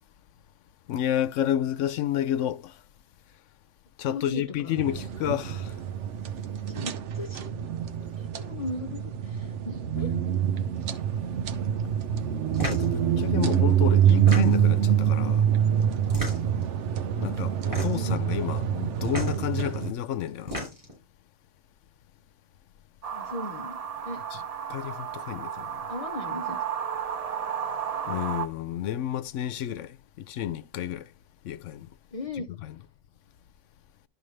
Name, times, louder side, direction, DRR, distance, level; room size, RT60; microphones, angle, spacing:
voice 1, 0.9-2.8 4.0-5.7 12.7-15.5 17.2-20.6 24.3-24.4 24.7-25.8 28.1-31.1 31.4-31.9 32.6-32.7, left 11 dB, 85° left, 1.0 m, -30 dB
voice 2, 4.1-5.0 6.7-7.5 8.2-10.1 17.9-18.2 23.1-23.8 24.0-24.2 25.9-26.6 32.1-32.5, left 2 dB, 35° left, 0.8 m, -37 dB
sound 1, 4.8-19.9, right 9 dB, 75° right, 1.1 m, -26 dB
sound 2, 12.5-12.9 14.1-14.8 16.0-16.6 17.6-18.1 19.0-19.4 20.3-21.0, left 1 dB, 15° right, 5.7 m, -33 dB
sound 3, 23.0-28.5, right 8 dB, 45° right, 0.5 m, -33 dB
12.5 x 4.9 x 3.2 m
omnidirectional pair, 1.2 m